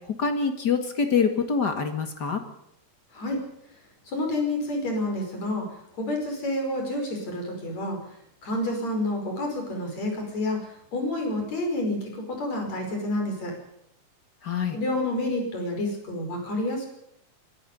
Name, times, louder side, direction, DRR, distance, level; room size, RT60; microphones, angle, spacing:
voice 1, 0.2-2.4 14.4-14.8, left 5 dB, 35° left, 7 dB, 2.1 m, -25 dB
voice 2, 3.1-3.5 4.1-5.7 6.0-8.0 8.4-13.5 14.7-16.9, left 1 dB, 60° left, 3 dB, 6.4 m, -29 dB
22.5 x 12.0 x 10.0 m, 0.75 s
omnidirectional pair, 3.5 m